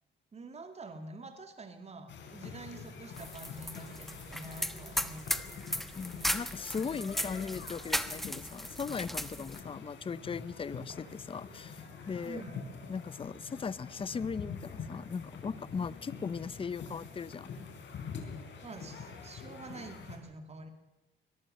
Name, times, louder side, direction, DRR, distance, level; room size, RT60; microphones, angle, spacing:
voice 1, 0.3-6.0 9.4-9.5 12.2-12.7 18.6-20.7, right 2 dB, 30° right, 7 dB, 2.3 m, -47 dB
sound 1, 2.1-20.2, left 5 dB, 65° left, 4.3 m, -46 dB
sound 2, 3.2-9.6, equal, ahead, 1.2 m, -36 dB
voice 2, 6.0-12.4 12.9-17.5, left 5 dB, 25° left, 19 dB, 0.6 m, -38 dB
24.0 x 18.0 x 6.5 m, 0.98 s
cardioid pair, 90°, 20 cm